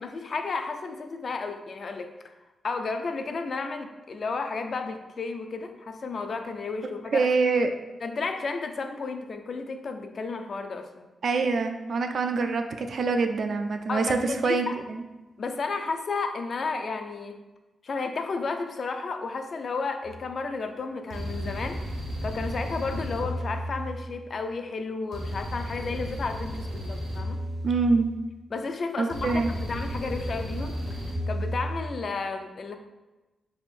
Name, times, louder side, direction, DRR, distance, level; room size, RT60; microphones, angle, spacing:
voice 1, 0.0-2.1 2.6-7.3 8.0-11.1 13.9-14.8 15.4-17.4 17.8-27.4 28.5-30.8 31.3-32.8, left 4 dB, 50° left, 6 dB, 0.3 m, -32 dB
voice 2, 7.1-7.7 11.2-15.1 27.6-28.1 29.0-29.5, right 4 dB, 60° right, 6 dB, 0.3 m, -25 dB
sound 1, 20.0-20.3 21.1-24.4 25.1-28.4 29.1-32.0, equal, 80° right, 1.1 m, -33 dB
3.5 x 2.5 x 4.2 m, 1.1 s
wide cardioid pair, 115°, 0 cm